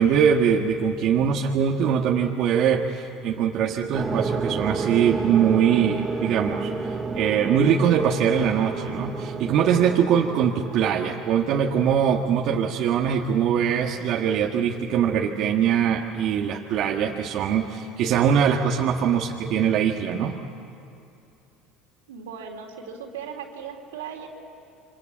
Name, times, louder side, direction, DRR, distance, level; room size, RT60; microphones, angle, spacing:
voice 1, 0.0-6.7 7.1-20.4, right 8 dB, 60° right, 1 dB, 1.6 m, -22 dB
sound 1, 3.9-11.3, right 3 dB, 20° right, 2.4 m, -30 dB
voice 2, 22.1-24.3, right 7 dB, 90° right, 2 dB, 3.5 m, -37 dB
27.5 x 25.0 x 8.6 m, 2.7 s
hypercardioid pair, 80°, 0 cm